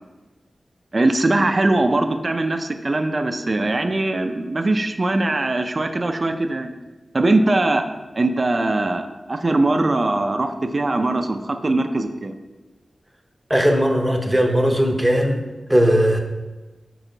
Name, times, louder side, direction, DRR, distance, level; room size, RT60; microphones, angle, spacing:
voice 1, 0.9-6.7 7.1-7.9 8.1-12.3, right 2 dB, 40° right, 6 dB, 0.5 m, -21 dB
voice 2, 13.5-15.4 15.7-16.2, equal, 5° right, 3 dB, 0.7 m, -18 dB
6.3 x 4.8 x 3.9 m, 1.2 s
wide cardioid pair, 110°, 0 cm